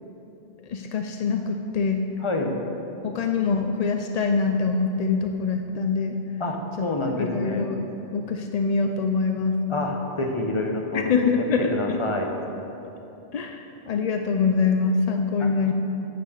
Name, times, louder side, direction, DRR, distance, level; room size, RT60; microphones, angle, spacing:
voice 1, 0.7-2.0 3.0-6.2 6.8-7.8 8.1-9.6 10.9-12.0 13.3-15.7, left 4 dB, 65° left, 4 dB, 0.4 m, -24 dB
voice 2, 2.2-2.6 6.4-7.7 9.7-11.1 11.4-12.3 15.4-15.5, left 2 dB, 30° left, 2 dB, 0.8 m, -28 dB
9.2 x 6.0 x 6.7 m, 3.0 s
omnidirectional pair, 1.2 m